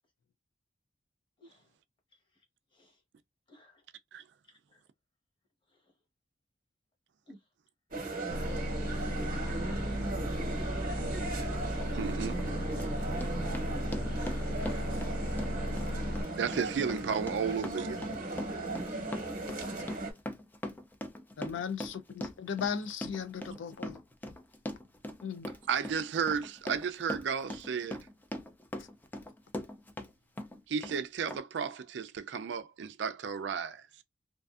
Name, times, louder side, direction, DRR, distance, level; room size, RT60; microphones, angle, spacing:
voice 1, 1.4-1.7 2.1-2.4 2.7-3.0 3.5-3.9 4.5-4.8 5.7-5.9 7.3-7.5 9.0-10.6 14.0-14.3 15.3-15.5 17.1-17.2 19.1-20.1 21.7-21.9, left 1 dB, 25° left, 1.0 m, -60 dB
sound 1, 7.9-20.1, right 2 dB, 50° right, 0.8 m, -37 dB
sound 2, 8.3-16.2, equal, 65° left, 1.0 m, -35 dB
Run, 11.8-11.9 12.4-30.1 30.4-31.0 31.3-31.4, left 1 dB, 10° left, 0.3 m, -41 dB
voice 2, 11.9-12.4 16.4-18.0 25.7-28.0 30.7-33.8, right 6 dB, 65° right, 0.4 m, -33 dB
voice 3, 21.4-24.0 25.2-25.5, left 7 dB, 85° left, 0.4 m, -37 dB
2.5 x 2.5 x 2.4 m
head